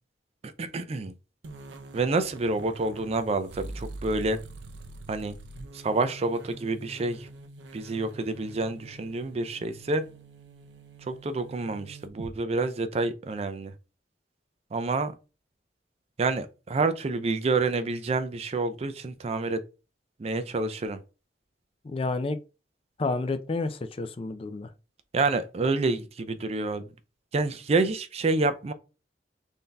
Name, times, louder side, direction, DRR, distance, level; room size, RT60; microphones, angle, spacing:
voice 1, 0.4-1.1 1.9-4.4 5.1-5.3 5.7-7.3 7.7-10.0 11.1-13.7 14.7-15.1 16.2-19.6 20.2-21.0 25.1-26.9 27.3-28.7, right 3 dB, 35° right, 0.4 m, -28 dB
sound 1, 1.4-12.3, right 2 dB, 85° right, 0.6 m, -45 dB
voice 2, 21.8-22.4 23.0-24.7, left 3 dB, 30° left, 0.4 m, -30 dB
3.8 x 2.7 x 3.4 m
head